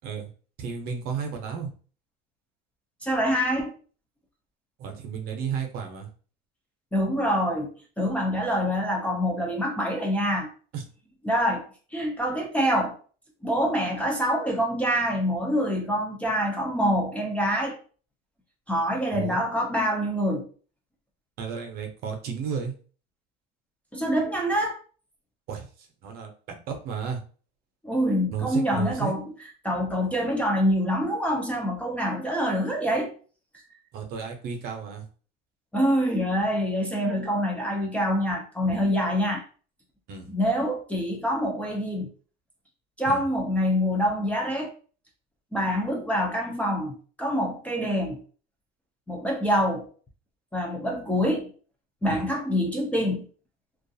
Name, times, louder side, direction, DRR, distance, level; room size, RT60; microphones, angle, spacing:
voice 1, 0.6-1.7 4.8-6.1 10.7-10.8 19.1-19.4 21.4-22.7 25.5-27.2 28.3-29.1 33.9-35.0 40.1-40.3 43.0-43.2 52.1-52.2, right 6 dB, 50° right, 0.7 m, -33 dB
voice 2, 3.0-3.7 6.9-10.5 11.2-11.6 11.9-13.0 13.4-17.8 18.7-20.5 23.9-24.8 27.8-29.2 29.6-33.1 35.7-39.4 40.3-42.1 43.0-44.7 45.5-48.2 49.1-49.9 50.5-51.5 52.0-53.3, equal, 5° left, 0.4 m, -25 dB
2.4 x 2.3 x 2.6 m
cardioid pair, 140°, 20 cm